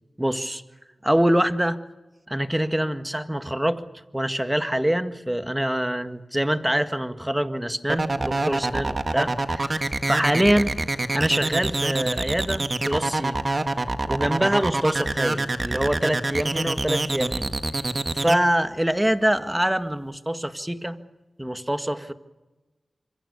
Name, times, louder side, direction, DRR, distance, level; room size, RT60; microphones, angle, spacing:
voice 1, 0.2-0.6 1.0-1.8 2.3-3.8 4.1-10.7 11.1-13.4 14.1-17.5 18.1-21.0 21.4-22.1, right 1 dB, 10° right, 9 dB, 1.8 m, -24 dB
sound 1, 7.9-18.4, right 2 dB, 45° right, 1.6 m, -25 dB
26.0 x 23.5 x 7.0 m, 1.1 s
cardioid pair, 45°, 0 cm